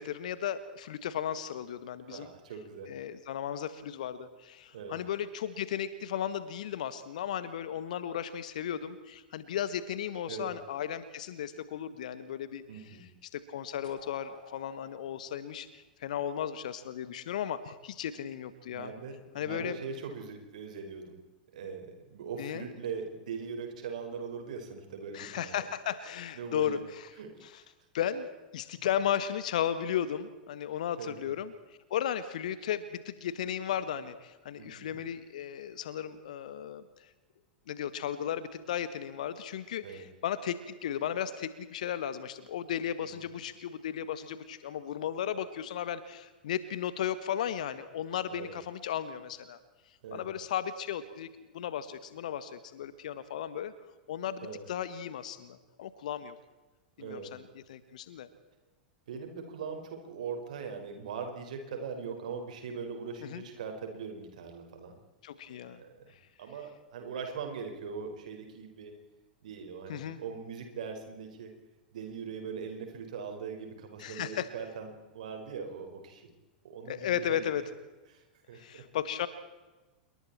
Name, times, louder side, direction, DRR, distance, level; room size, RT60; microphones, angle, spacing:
voice 1, 0.0-2.3 2.9-12.6 13.3-18.9 19.3-19.8 22.4-22.6 25.1-27.1 27.9-28.3 28.5-31.5 31.9-36.8 37.7-49.6 50.1-53.7 54.1-56.4 57.0-57.4 57.7-58.3 63.2-63.4 65.2-65.8 69.9-70.2 74.0-74.5 76.9-77.6 78.5-79.3, left 9 dB, 60° left, 14 dB, 1.6 m, -35 dB
voice 2, 2.1-2.9 4.7-5.0 10.2-10.5 12.7-13.1 18.7-21.2 21.5-25.7 26.3-26.8 27.2-27.7 31.0-31.3 34.6-35.0 39.8-40.1 43.0-43.2 48.3-48.6 50.0-50.3 54.4-54.7 57.0-57.3 59.1-65.0 65.6-66.1 66.4-68.9 69.4-71.5 71.9-76.3 76.6-77.4 78.1-78.8, right 5 dB, 60° right, 4 dB, 5.1 m, -41 dB
sound 1, 13.8-16.7, left 3 dB, 75° left, 4.5 m, -55 dB
27.5 x 23.5 x 4.4 m, 1.2 s
figure-of-eight pair, 90°, 5 cm